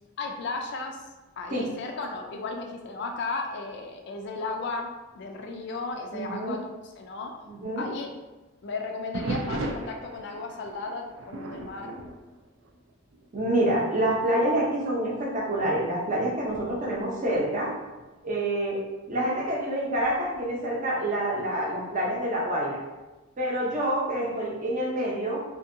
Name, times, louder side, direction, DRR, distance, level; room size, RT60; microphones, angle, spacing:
voice 1, 0.2-1.0 1.4-7.3 7.8-8.2 8.6-12.0, left 3 dB, 55° left, 3 dB, 0.3 m, -35 dB
voice 2, 6.1-6.6 7.5-7.8 13.3-17.7 18.2-18.8 19.1-22.8 23.4-25.4, right 1 dB, 40° right, -3 dB, 0.6 m, -27 dB
sound 1, 9.1-13.3 13.6-14.0 14.6-14.7 15.4-18.1 20.0-20.5, right 3 dB, 70° right, 0.4 m, -38 dB
2.7 x 2.6 x 2.5 m, 1.1 s
head